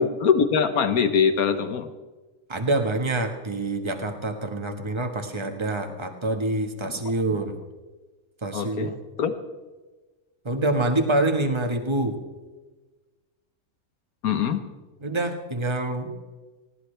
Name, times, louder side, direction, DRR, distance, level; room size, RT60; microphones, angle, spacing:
voice 1, 0.0-1.9 6.8-6.9 8.5-9.3 14.2-14.6, left 6 dB, 90° left, 10 dB, 1.6 m, -23 dB
voice 2, 2.5-7.5 8.4-8.9 10.4-12.2 15.0-16.1, right 2 dB, 20° right, 5 dB, 1.5 m, -26 dB
20.0 x 17.0 x 3.4 m, 1.2 s
omnidirectional pair, 1.5 m